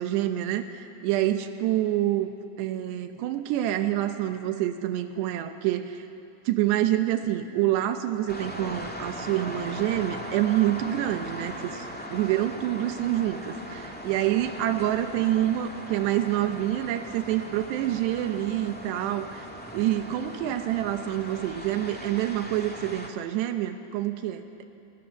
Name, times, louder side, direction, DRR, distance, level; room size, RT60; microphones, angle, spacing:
voice 1, 0.0-2.3 2.6-6.1 6.5-19.5 19.7-24.6, right 13 dB, 85° right, 8 dB, 3.1 m, -27 dB
sound 1, 8.3-23.1, equal, 10° left, 0.5 m, -39 dB
29.0 x 25.0 x 7.1 m, 2.7 s
omnidirectional pair, 4.8 m